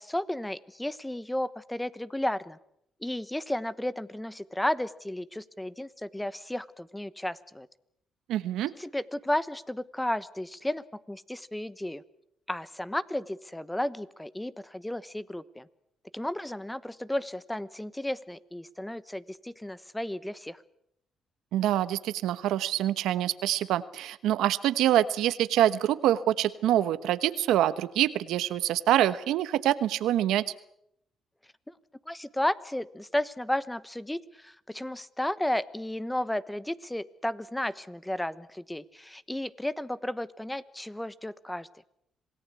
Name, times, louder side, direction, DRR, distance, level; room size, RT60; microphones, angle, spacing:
voice 1, 0.0-2.6 3.0-7.7 8.8-12.0 12.5-15.7 16.1-20.6 31.7-31.8 32.1-41.7, left 1 dB, 10° left, 16 dB, 1.1 m, -33 dB
voice 2, 8.3-8.7 21.5-30.4, right 12 dB, 85° right, 14 dB, 1.1 m, -25 dB
27.0 x 18.0 x 8.4 m, 0.76 s
cardioid pair, 90°, 0 cm